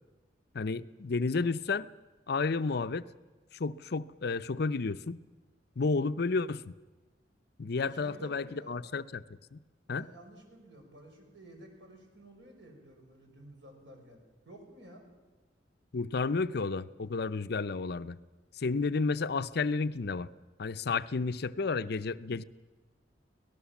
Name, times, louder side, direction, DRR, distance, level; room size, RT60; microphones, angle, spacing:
voice 1, 0.5-1.9 2.3-3.1 3.5-5.2 5.8-6.7 7.6-9.2 9.5-9.6 9.9-10.1 15.9-18.2 18.5-20.3 20.6-22.4, left 4 dB, 60° left, 13 dB, 0.6 m, -31 dB
voice 2, 7.8-8.8 9.9-15.1, right 1 dB, 85° right, 2 dB, 5.9 m, -52 dB
24.5 x 18.0 x 7.2 m, 1.2 s
head